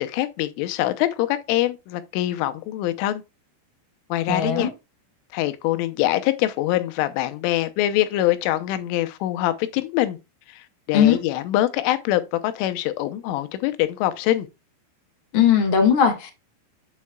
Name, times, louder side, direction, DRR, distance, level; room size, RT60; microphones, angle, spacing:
voice 1, 0.0-3.2 4.1-4.7 5.3-10.2 10.5-14.5, left 14 dB, 85° left, 3.4 m, -24 dB
voice 2, 4.3-4.7 10.9-11.2 15.3-16.3, left 8 dB, 65° left, 1.2 m, -18 dB
8.5 x 7.7 x 2.3 m
omnidirectional pair, 5.5 m